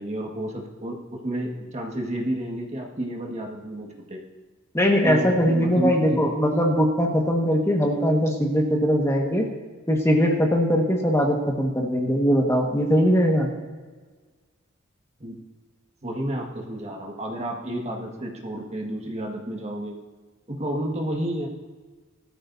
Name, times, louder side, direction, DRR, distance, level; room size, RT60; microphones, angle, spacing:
voice 1, 0.0-4.2 5.0-6.2 15.2-15.3 16.0-19.9 20.5-21.5, right 1 dB, 30° right, 0 dB, 1.7 m, -30 dB
voice 2, 4.7-9.5 9.9-13.5, equal, 15° left, 0 dB, 1.6 m, -21 dB
20.5 x 13.5 x 2.7 m, 1.4 s
head